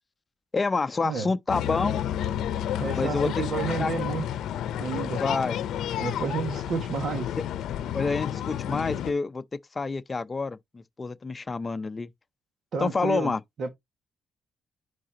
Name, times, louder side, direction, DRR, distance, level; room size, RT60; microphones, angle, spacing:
voice 1, 0.5-2.0 3.0-3.4 3.8-3.9 5.2-5.6 7.9-9.4 9.7-12.1 12.8-13.4, left 4 dB, 30° left, 0.6 m, -28 dB
sound 1, 1.5-9.1, left 10 dB, 80° left, 0.7 m, -30 dB
voice 2, 2.8-4.3 4.8-5.2 6.0-7.3 12.7-13.3 13.6-13.7, right 5 dB, 60° right, 1.6 m, -31 dB
10.0 x 4.0 x 2.9 m
cardioid pair, 90°, 0 cm